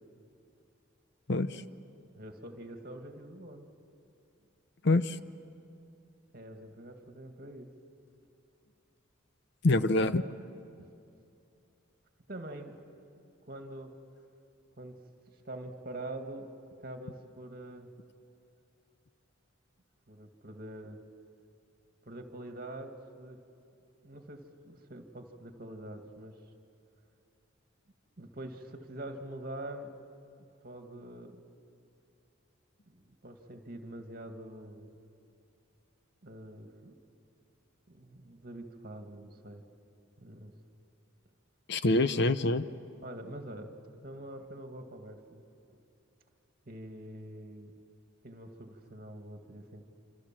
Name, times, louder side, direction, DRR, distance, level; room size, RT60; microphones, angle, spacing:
voice 1, 1.3-1.6 4.8-5.2 9.6-10.2 41.7-42.6, left 2 dB, 55° left, 12 dB, 0.7 m, -26 dB
voice 2, 2.2-3.7 6.3-7.7 10.8-10.9 12.3-12.8 13.4-13.9 14.8-15.0 15.3-16.5 16.8-17.9 20.1-21.0 22.1-23.4 24.0-26.4 28.2-29.9 30.4-31.4 32.9-35.1 36.2-37.0 37.9-39.6 40.2-40.5 41.8-41.9 43.0-43.7 44.0-45.4 45.7-45.9 46.7-47.7 48.2-49.8, right 1 dB, 45° right, 5 dB, 2.1 m, -45 dB
27.0 x 26.5 x 7.5 m, 2.6 s
head